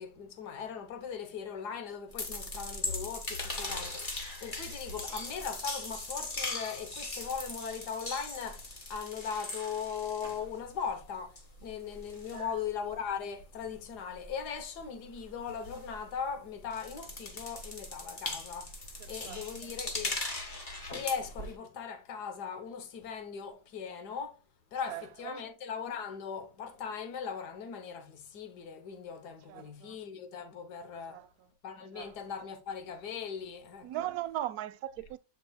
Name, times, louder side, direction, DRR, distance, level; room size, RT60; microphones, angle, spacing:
voice 1, 0.0-18.8 19.1-20.2 20.9-24.4 24.7-31.2 31.6-34.1, left 7 dB, 80° left, 1.6 m, -39 dB
sound 1, 2.1-11.0 11.3-16.3 16.6-21.5, left 2 dB, 30° left, 1.6 m, -40 dB
voice 2, 19.0-19.5 24.9-25.4 29.5-30.0 31.1-31.3 31.9-32.1 33.8-35.2, right 13 dB, 75° right, 1.0 m, -39 dB
8.5 x 5.4 x 2.3 m
omnidirectional pair, 1.7 m